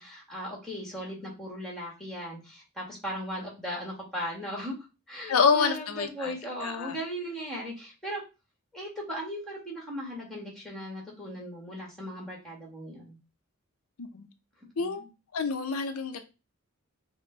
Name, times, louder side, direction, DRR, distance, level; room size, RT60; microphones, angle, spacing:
voice 1, 0.0-4.8 5.1-8.2 8.7-13.2 14.8-15.1, equal, ahead, -2 dB, 1.7 m, -37 dB
voice 2, 5.3-6.4 6.6-7.0 14.0-14.3 14.8-15.0 15.3-16.2, left 5 dB, 85° left, 7 dB, 0.6 m, -27 dB
5.3 x 2.2 x 3.8 m, 0.28 s
head